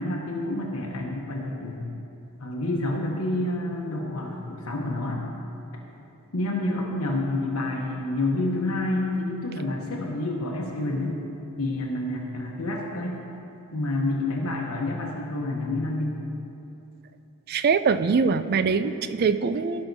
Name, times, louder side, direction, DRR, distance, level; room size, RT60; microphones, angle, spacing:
voice 1, 0.0-1.9 2.4-5.2 6.3-11.2 11.6-13.2 13.7-16.2, left 2 dB, 70° left, -1 dB, 0.9 m, -28 dB
voice 2, 17.5-19.8, right 5 dB, 45° right, 12 dB, 0.3 m, -23 dB
16.5 x 5.7 x 4.0 m, 2.9 s
head